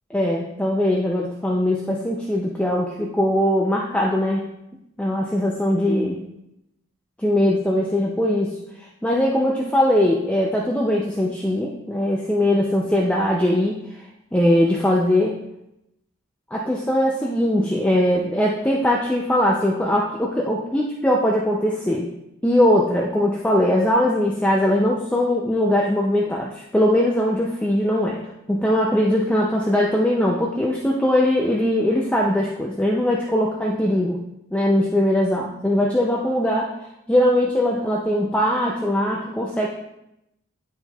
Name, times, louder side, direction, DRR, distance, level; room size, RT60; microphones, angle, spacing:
voice 1, 0.1-4.5 5.0-6.2 7.2-14.1 14.3-15.4 16.5-22.1 22.4-34.2 34.5-36.7 37.1-39.7, left 1 dB, 5° left, -2 dB, 0.4 m, -21 dB
9.7 x 4.3 x 2.3 m, 0.85 s
head